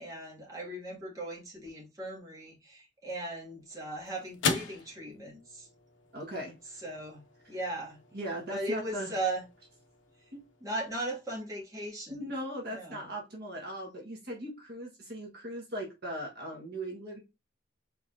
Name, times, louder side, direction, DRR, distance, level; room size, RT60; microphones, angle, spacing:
voice 1, 0.0-5.7 6.8-7.2 7.5-8.0 8.5-9.4 10.6-12.3 12.7-13.1, right 1 dB, 20° right, 1.8 m, -37 dB
sound 1, 3.1-11.7, left 5 dB, 80° left, 0.8 m, -41 dB
voice 2, 6.1-6.8 8.1-9.1 10.3-10.4 12.1-17.2, right 1 dB, 55° right, 1.4 m, -39 dB
4.7 x 4.0 x 2.6 m
head